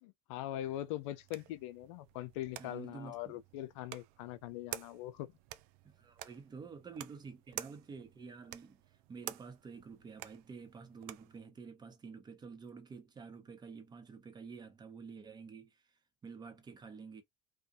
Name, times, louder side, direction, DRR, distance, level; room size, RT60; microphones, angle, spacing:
voice 1, 0.0-5.3, left 13 dB, 70° left, 0.4 m, -42 dB
sound 1, 0.6-11.4, right 14 dB, 60° right, 0.4 m, -50 dB
voice 2, 2.6-3.4 5.8-8.8 9.1-15.8 16.2-17.2, right 5 dB, 25° right, 0.9 m, -49 dB
2.6 x 2.3 x 2.5 m
hypercardioid pair, 85°, 16 cm